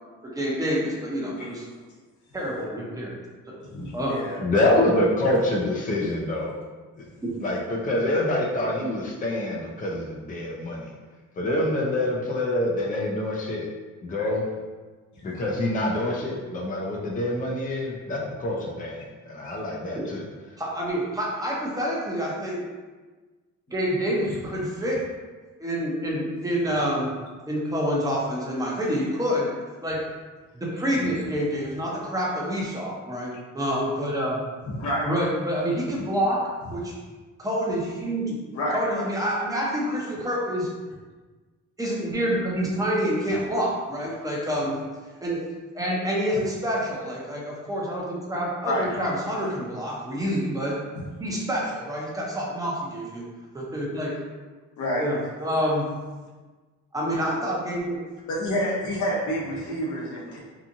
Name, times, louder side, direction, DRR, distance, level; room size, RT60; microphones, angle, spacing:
voice 1, 0.2-1.6 2.3-3.1 3.5-3.6 3.9-4.2 7.2-7.3 19.9-20.1 20.6-22.6 23.7-25.0 25.6-27.1 27.5-29.5 29.8-30.0 30.5-34.4 35.0-36.4 36.7-36.9 37.4-38.4 38.7-40.7 41.8-44.8 45.2-45.4 45.7-50.8 51.2-53.2 53.5-54.1 55.0-55.9 56.9-58.0, equal, 10° right, -4 dB, 0.8 m, -27 dB
voice 2, 3.6-4.4 5.2-5.3 19.4-19.5 34.7-35.1 38.5-38.8 48.6-48.9 50.9-51.0 54.8-55.1 58.3-60.4, equal, 75° left, -4 dB, 0.9 m, -28 dB
voice 3, 4.4-6.5 7.0-7.1 7.4-10.9 11.4-13.7 14.0-14.4 15.2-20.2, left 1 dB, 25° left, -3 dB, 0.5 m, -26 dB
2.9 x 2.4 x 2.6 m, 1.3 s
cardioid pair, 90°, 30 cm